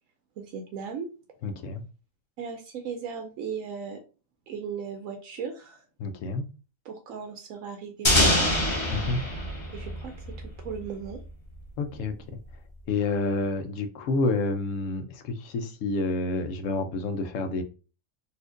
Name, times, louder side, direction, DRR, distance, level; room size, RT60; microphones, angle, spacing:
voice 1, 0.4-1.1 2.4-4.0 4.5-5.8 6.8-8.8 9.7-10.1 10.6-11.2, right 6 dB, 85° right, 5 dB, 1.0 m, -37 dB
voice 2, 1.4-1.8 6.0-6.5 8.9-9.2 11.8-12.4 12.9-17.6, left 3 dB, 75° left, 8 dB, 0.9 m, -29 dB
sound 1, 8.0-10.8, left 1 dB, 25° left, 0.8 m, -25 dB
4.1 x 2.5 x 2.5 m, 0.34 s
omnidirectional pair, 1.4 m